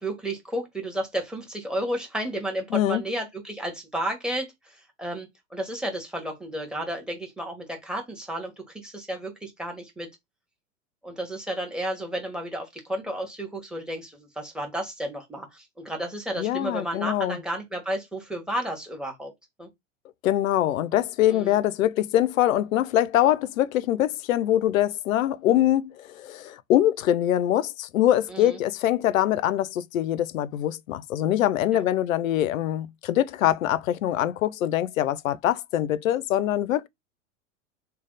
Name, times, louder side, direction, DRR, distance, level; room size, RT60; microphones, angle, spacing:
voice 1, 0.0-10.1 11.0-19.3 19.6-19.7 21.3-21.6 28.3-28.6 31.7-31.8, right 1 dB, ahead, 1.3 m, -32 dB
voice 2, 2.7-3.0 16.4-17.4 20.2-36.9, left 12 dB, 80° left, 0.6 m, -23 dB
3.3 x 2.3 x 3.9 m
hypercardioid pair, 110°, 39 cm